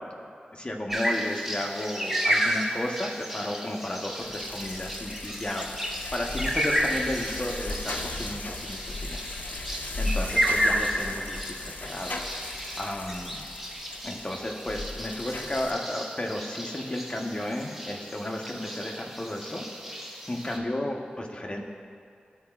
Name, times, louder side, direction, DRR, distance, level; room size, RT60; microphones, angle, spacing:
voice 1, 0.0-5.7 6.1-11.4 11.8-12.1 12.8-13.4 14.0-19.6 19.9-20.0 20.3-21.6, left 1 dB, 30° left, 1 dB, 1.0 m, -33 dB
sound 1, 0.9-20.6, equal, 5° right, 1.1 m, -32 dB
sound 2, 4.2-15.7, left 2 dB, 60° left, 0.5 m, -37 dB
14.0 x 4.8 x 2.4 m, 2.4 s
cardioid pair, 50°, 3 cm